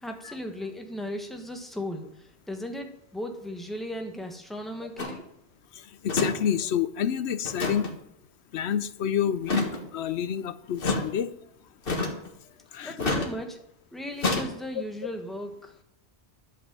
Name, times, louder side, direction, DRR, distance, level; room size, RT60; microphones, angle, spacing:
voice 1, 0.0-5.3 12.8-13.6 13.9-15.8, equal, ahead, 3 dB, 1.2 m, -36 dB
sound 1, 5.0-5.2 6.1-6.3 6.6-6.7 7.4-7.9 9.4-9.8 10.8-11.0 11.8-12.3 13.0-13.3 14.2-14.5, left 2 dB, 60° left, 1.7 m, -27 dB
voice 2, 6.0-8.0 8.5-11.3 12.7-13.1, left 8 dB, 85° left, 13 dB, 0.9 m, -28 dB
11.5 x 5.2 x 7.4 m, 0.78 s
omnidirectional pair, 1.1 m